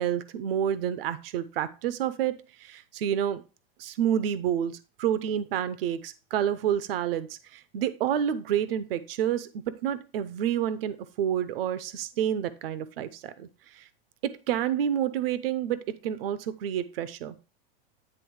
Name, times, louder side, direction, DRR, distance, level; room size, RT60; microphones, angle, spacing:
voice 1, 0.0-3.4 3.8-13.9 14.2-17.4, right 10 dB, 65° right, 14 dB, 0.8 m, -29 dB
9.9 x 3.6 x 4.6 m, 0.31 s
supercardioid pair, 170°, 31 cm